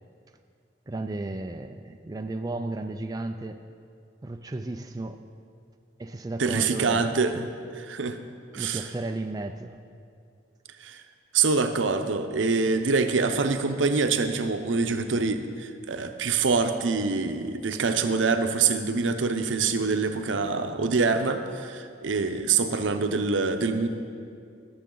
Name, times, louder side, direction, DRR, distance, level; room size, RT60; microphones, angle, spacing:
voice 1, 0.9-3.6 4.2-5.2 6.0-7.4 8.6-9.8, right 2 dB, 20° right, 6 dB, 0.3 m, -34 dB
voice 2, 6.4-7.5 7.9-8.2 8.5-8.8 10.8-11.0 11.3-23.9, right 4 dB, 85° right, 8 dB, 0.7 m, -25 dB
19.5 x 6.8 x 3.8 m, 2.4 s
head